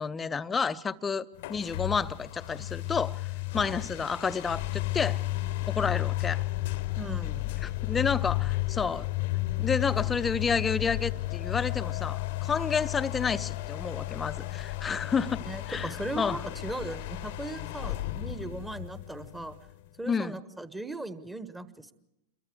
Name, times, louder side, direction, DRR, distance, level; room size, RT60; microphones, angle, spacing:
voice 1, 0.0-5.2 5.7-6.4 7.6-9.1 9.6-16.4 20.1-20.4, left 5 dB, 15° left, 0.7 m, -30 dB
sound 1, 1.4-19.9, left 18 dB, 50° left, 0.9 m, -33 dB
voice 2, 7.0-7.6 15.5-19.5 20.0-21.9, right 2 dB, 5° right, 1.3 m, -38 dB
27.0 x 23.0 x 4.8 m
figure-of-eight pair, 90°, 0 cm